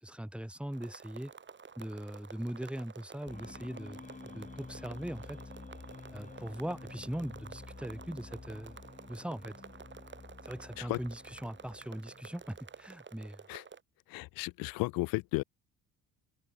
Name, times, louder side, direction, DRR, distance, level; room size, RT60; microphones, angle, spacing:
voice 1, 0.0-1.3 1.8-4.0 4.3-5.4 6.1-8.8 9.1-9.5 10.4-13.4, right 1 dB, 5° right, 2.5 m, -40 dB
sound 1, 0.7-13.8, right 6 dB, 30° right, 2.9 m, -51 dB
sound 2, 3.3-12.9, left 4 dB, 20° left, 4.0 m, -50 dB
voice 2, 14.1-15.4, left 22 dB, 70° left, 0.6 m, -34 dB
open air
supercardioid pair, 85°, 36 cm